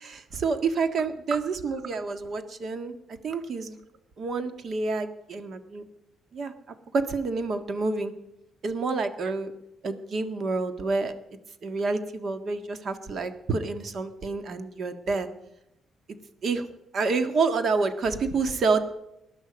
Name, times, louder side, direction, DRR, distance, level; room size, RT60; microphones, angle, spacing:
voice 1, 0.0-2.9 3.2-3.8 4.2-5.8 6.3-6.5 6.9-8.1 8.6-9.5 9.8-11.1 11.6-15.3 16.4-16.7 16.9-18.9, right 4 dB, 55° right, 9 dB, 1.7 m, -28 dB
19.5 x 11.5 x 5.3 m, 0.88 s
cardioid pair, 90°, 0 cm